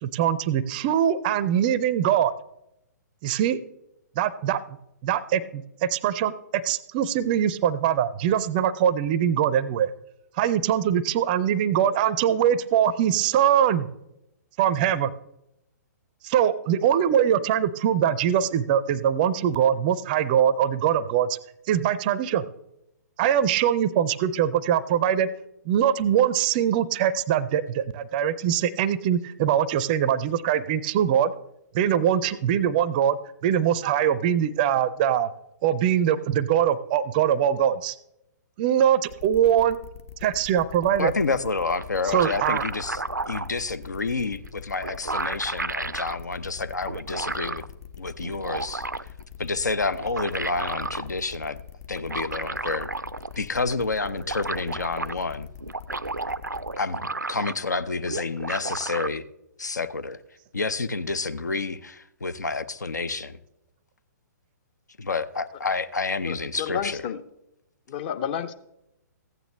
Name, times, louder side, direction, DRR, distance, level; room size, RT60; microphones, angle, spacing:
voice 1, 0.0-2.3 3.2-3.6 4.2-4.8 5.0-9.9 10.4-13.9 14.6-15.1 16.2-21.4 21.7-22.4 23.2-25.3 25.7-31.3 31.7-35.3 35.6-38.0 38.6-39.8 40.2-41.1 42.1-42.6, right 9 dB, 30° right, 0.5 m, -22 dB
sound 1, 39.1-56.7, left 9 dB, 50° left, 1.1 m, -44 dB
voice 2, 41.0-47.6 48.0-48.9 49.4-51.6 51.9-52.9 53.4-55.5 56.8-59.2 59.6-60.2 60.5-63.4 65.0-67.0, left 3 dB, 70° left, 0.6 m, -29 dB
sound 2, 41.8-43.5 44.5-44.6 44.8-46.2 46.9-47.7 48.2-49.2 49.9-51.1 52.0-53.4 53.7-53.8 54.0-55.2 55.6-57.8 58.1-59.1, right 3 dB, 85° right, 0.4 m, -32 dB
voice 3, 66.2-67.2 67.9-68.5, left 8 dB, 35° left, 0.7 m, -31 dB
15.0 x 9.1 x 3.2 m
figure-of-eight pair, 120°, 10 cm